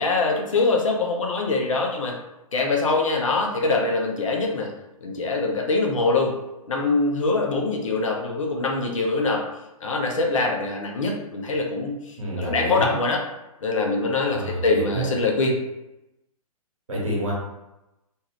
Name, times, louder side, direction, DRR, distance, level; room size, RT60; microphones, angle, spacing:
voice 1, 0.0-2.2 2.5-4.7 5.0-6.4 6.7-9.5 9.8-13.2 13.6-15.6, left 3 dB, 60° left, 0 dB, 0.7 m, -23 dB
voice 2, 12.2-12.9 14.3-15.1 16.9-17.3, right 1 dB, 60° right, -4 dB, 1.2 m, -28 dB
2.7 x 2.3 x 3.1 m, 0.95 s
figure-of-eight pair, 120°, 19 cm